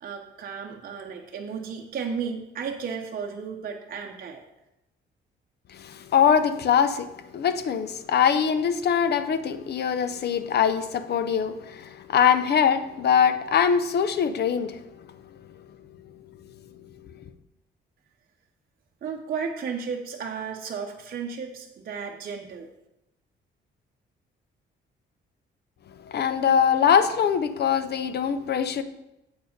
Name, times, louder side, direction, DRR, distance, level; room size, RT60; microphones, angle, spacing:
voice 1, 0.0-4.4 19.0-22.7, right 6 dB, 50° right, 0.8 m, -34 dB
voice 2, 5.8-7.1 7.3-14.8 26.1-28.8, left 7 dB, 55° left, 0.6 m, -22 dB
7.6 x 4.7 x 5.2 m
cardioid pair, 90°, 20 cm